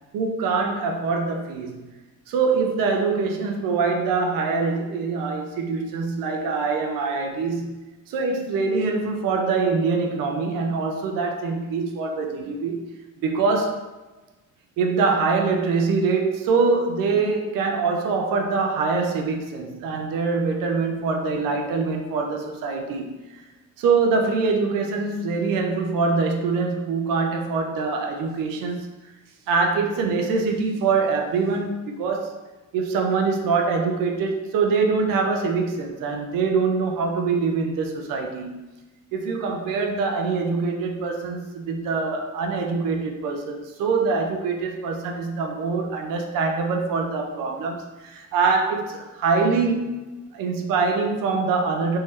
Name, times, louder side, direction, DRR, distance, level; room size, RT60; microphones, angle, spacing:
voice 1, 0.1-1.9 2.3-7.8 8.1-12.9 13.2-13.8 14.8-23.4 23.8-29.1 29.5-32.4 32.7-38.7 39.1-52.0, right 4 dB, 80° right, 3 dB, 0.6 m, -24 dB
3.7 x 2.8 x 3.1 m, 1.1 s
cardioid pair, 175°, 33 cm